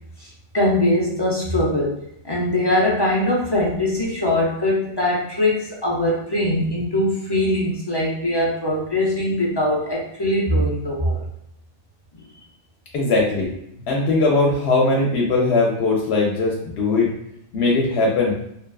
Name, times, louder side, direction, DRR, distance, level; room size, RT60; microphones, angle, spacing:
voice 1, 0.5-2.0 2.2-11.2, left 1 dB, 35° left, -5 dB, 0.5 m, -21 dB
voice 2, 12.9-13.5 13.9-17.1 17.5-18.3, left 3 dB, 80° left, -2 dB, 0.8 m, -19 dB
2.8 x 2.3 x 2.3 m, 0.76 s
omnidirectional pair, 1.1 m